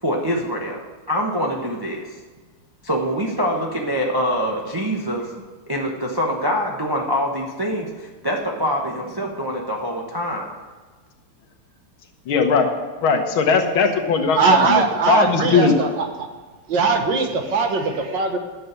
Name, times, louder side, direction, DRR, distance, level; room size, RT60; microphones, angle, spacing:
voice 1, 0.0-0.8 1.1-2.2 2.8-5.3 5.7-10.5, equal, 20° right, -1 dB, 0.6 m, -24 dB
voice 2, 12.3-12.7 13.0-15.8, left 5 dB, 70° left, 4 dB, 1.9 m, -19 dB
voice 3, 14.4-15.9 16.7-18.4, right 4 dB, 60° right, 4 dB, 1.7 m, -20 dB
10.5 x 6.8 x 8.1 m, 1.3 s
omnidirectional pair, 2.4 m